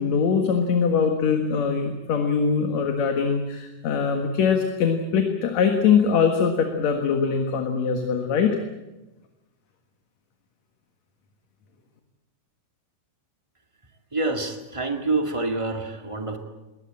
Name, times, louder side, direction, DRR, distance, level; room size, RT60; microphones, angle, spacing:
voice 1, 0.0-8.6, left 6 dB, 60° left, 4 dB, 2.7 m, -22 dB
voice 2, 14.1-16.4, right 3 dB, 15° right, 4 dB, 1.4 m, -27 dB
22.0 x 18.5 x 8.8 m, 1.1 s
omnidirectional pair, 3.6 m